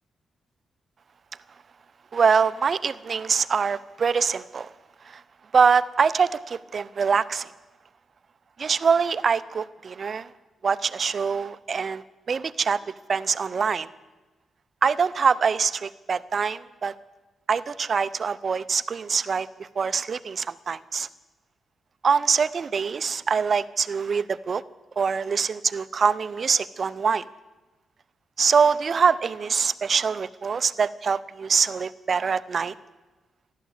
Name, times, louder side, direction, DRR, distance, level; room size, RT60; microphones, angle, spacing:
voice 1, 2.1-4.7 5.0-5.2 5.5-7.5 8.6-10.3 10.6-12.8 13.1-13.9 14.8-16.9 17.5-21.1 22.0-24.6 25.0-27.2 28.4-32.7, right 5 dB, 50° right, 16 dB, 0.6 m, -24 dB
14.5 x 12.0 x 8.2 m, 1.2 s
cardioid pair, 85°, 0 cm